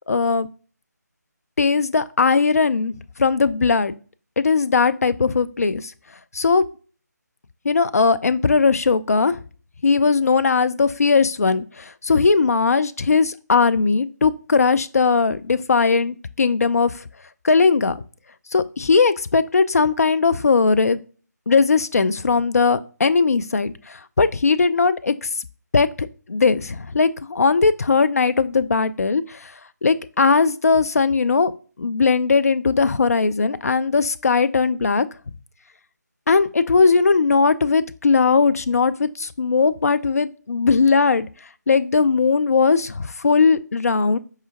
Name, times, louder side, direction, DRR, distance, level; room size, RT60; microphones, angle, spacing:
voice 1, 0.1-0.5 1.6-3.9 4.4-5.9 6.3-6.6 7.6-9.4 9.8-17.0 17.4-18.0 18.5-21.0 21.5-25.3 25.7-29.5 29.8-31.5 31.8-35.1 36.3-41.3 41.7-44.2, left 4 dB, 55° left, 12 dB, 0.4 m, -19 dB
4.8 x 3.3 x 2.8 m, 0.38 s
figure-of-eight pair, 160°, 10 cm